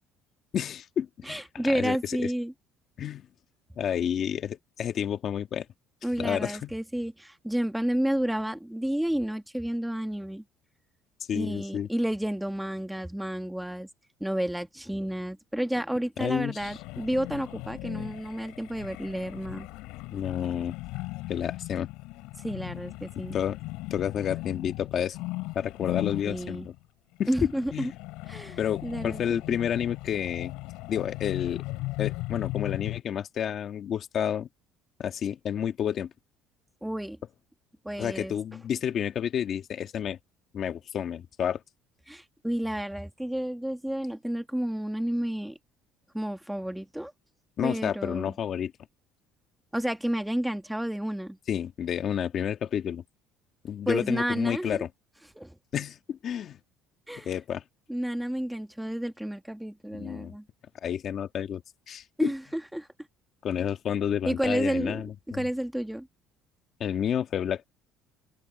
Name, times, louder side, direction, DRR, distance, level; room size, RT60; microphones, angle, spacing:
voice 1, 0.5-2.3 3.0-3.2 3.8-5.6 6.2-6.7 11.3-11.9 16.2-16.8 20.1-20.7 21.3-21.9 23.3-23.6 23.9-25.2 25.5-26.7 27.2-27.9 28.6-30.5 30.9-31.6 32.0-34.5 35.0-36.1 38.0-40.2 40.5-41.6 47.6-48.7 51.5-53.0 53.6-54.9 55.7-56.6 57.2-57.6 59.9-60.3 60.8-61.6 61.9-62.3 63.4-65.5 66.8-67.7, left 9 dB, 40° left, 1.6 m, -30 dB
voice 2, 1.2-2.5 6.0-10.4 11.3-13.9 14.2-19.7 22.4-23.4 26.2-26.7 27.3-27.9 28.3-29.6 36.8-37.2 37.8-38.3 42.1-45.6 46.1-47.1 47.6-48.3 49.7-51.4 53.9-54.8 55.3-55.5 57.1-57.3 57.9-60.4 62.2-62.9 64.2-65.0 65.3-66.1, right 1 dB, 5° right, 1.4 m, -31 dB
sound 1, 16.6-26.8 27.2-33.0, left 21 dB, 80° left, 6.8 m, -37 dB
open air
cardioid pair, 145°, 0 cm